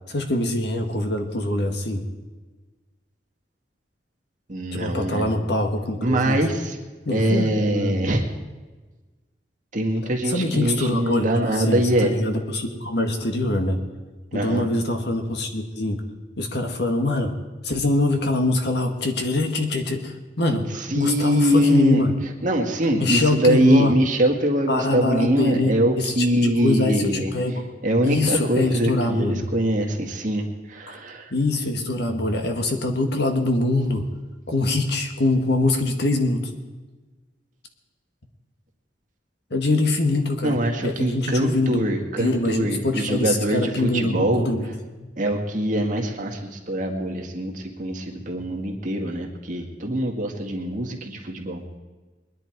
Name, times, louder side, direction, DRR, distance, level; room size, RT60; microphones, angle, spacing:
voice 1, 0.1-2.0 4.7-6.4 7.1-8.1 10.2-13.8 14.3-16.0 16.4-17.3 17.6-22.2 23.0-24.0 24.7-27.6 28.0-29.5 30.9-31.0 31.3-34.1 34.5-36.5 39.5-41.8 42.2-45.1 48.2-48.3, left 2 dB, 60° left, 4 dB, 1.7 m, -24 dB
voice 2, 4.5-5.3 6.0-6.8 7.1-8.2 9.7-12.1 14.3-14.7 20.5-20.6 20.9-22.0 22.4-27.3 27.8-31.3 40.4-44.5 45.2-51.6, right 1 dB, 45° right, 2 dB, 1.9 m, -23 dB
22.0 x 10.5 x 4.6 m, 1.3 s
head